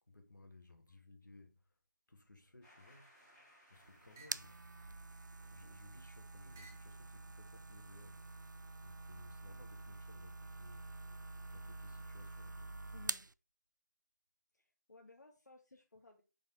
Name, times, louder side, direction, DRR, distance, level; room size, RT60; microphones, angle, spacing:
voice 1, 0.1-1.6 2.1-3.1 3.7-4.6 5.5-8.3 8.8-11.0 11.5-12.8, left 2 dB, 80° left, 1.7 m, -60 dB
sound 1, 2.6-5.5, equal, 10° left, 2.1 m, -66 dB
sound 2, 3.2-3.6 4.2-4.5 5.3-5.9 6.5-7.0 7.8-8.4, right 3 dB, 10° right, 0.4 m, -63 dB
sound 3, 3.7-13.3, right 3 dB, 85° right, 0.4 m, -47 dB
voice 2, 12.9-13.2 14.5-16.2, left 3 dB, 65° left, 1.3 m, -59 dB
7.1 x 4.3 x 4.4 m
figure-of-eight pair, 160°, 10 cm